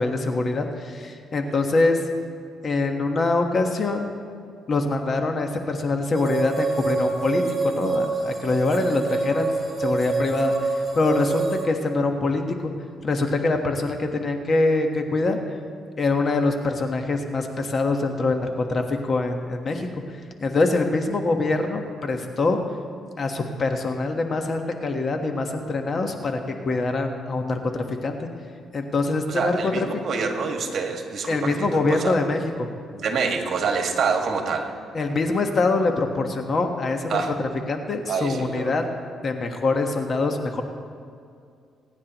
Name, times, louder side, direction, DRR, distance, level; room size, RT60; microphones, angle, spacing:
voice 1, 0.0-2.0 2.6-4.1 4.7-9.5 9.8-12.7 13.0-15.4 16.0-19.9 20.4-22.6 23.2-26.4 26.6-28.3 28.7-29.9 31.3-32.7 34.9-38.8 39.2-40.6, left 3 dB, 45° left, 5 dB, 1.3 m, -24 dB
sound 1, 6.1-11.7, right 3 dB, 35° right, 2.6 m, -26 dB
voice 2, 29.3-32.1 32.9-34.7 37.1-37.3 38.1-38.7, right 5 dB, 60° right, 2 dB, 1.8 m, -26 dB
27.5 x 9.7 x 3.0 m, 2.3 s
cardioid pair, 90°, 0 cm